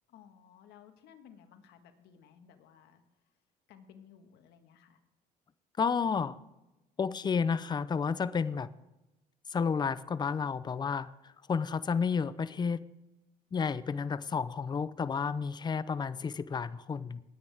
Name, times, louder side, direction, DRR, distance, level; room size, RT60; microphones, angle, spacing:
voice 1, 0.1-3.0 3.7-5.0, left 8 dB, 80° left, 7 dB, 1.6 m, -57 dB
voice 2, 5.8-6.4 7.0-8.7 9.5-12.9 13.5-17.2, left 6 dB, 25° left, 16 dB, 0.5 m, -31 dB
19.5 x 8.5 x 3.5 m, 0.99 s
cardioid pair, 110°, 17 cm